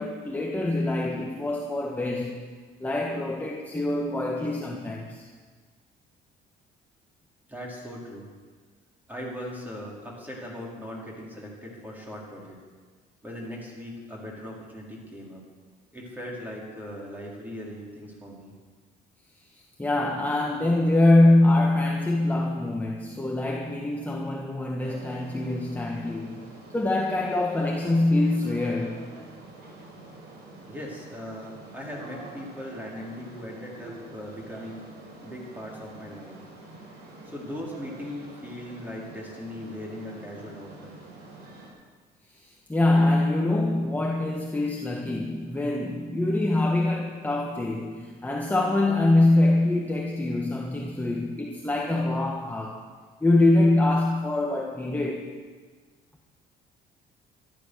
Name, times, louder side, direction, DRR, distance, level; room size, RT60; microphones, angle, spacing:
voice 1, 0.0-2.4 2.8-5.3 19.8-26.4 26.7-29.1 42.3-52.9 53.2-55.3, left 2 dB, 10° left, 0 dB, 1.5 m, -24 dB
voice 2, 7.5-8.3 9.1-12.6 13.2-15.4 15.9-18.5 30.7-34.8 35.2-36.4 37.2-40.9, left 1 dB, 10° right, -3 dB, 4.7 m, -39 dB
sound 1, 24.8-41.7, right 2 dB, 75° right, 4.7 m, -46 dB
13.5 x 13.0 x 6.6 m, 1.5 s
cardioid pair, 110°, 17 cm